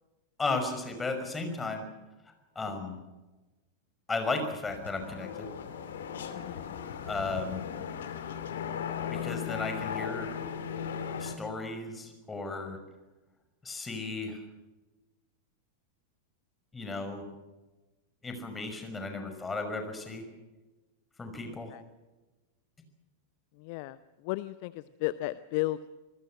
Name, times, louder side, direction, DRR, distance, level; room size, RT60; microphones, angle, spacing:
voice 1, 0.4-1.8 2.6-3.0 4.1-5.5 7.1-7.7 9.1-10.3 11.2-12.8 13.6-14.4 16.7-17.2 18.2-20.3 21.2-21.7, left 3 dB, 15° left, 6 dB, 5.7 m, -34 dB
sound 1, 4.6-11.4, left 7 dB, 60° left, 2.7 m, -37 dB
voice 2, 6.3-6.7 21.5-21.8 23.6-25.9, left 17 dB, 45° left, 16 dB, 0.7 m, -35 dB
26.0 x 21.0 x 6.3 m, 1.1 s
figure-of-eight pair, 90°, 0 cm